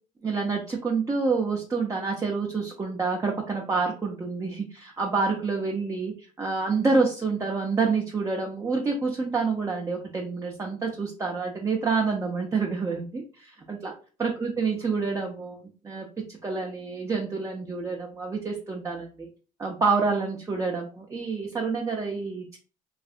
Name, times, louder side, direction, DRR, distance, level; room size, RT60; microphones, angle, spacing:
voice 1, 0.2-13.9 14.2-15.6 15.8-19.3 19.6-22.6, right 4 dB, 20° right, 0 dB, 0.5 m, -28 dB
3.2 x 2.6 x 2.4 m, 0.37 s
cardioid pair, 110°, 17 cm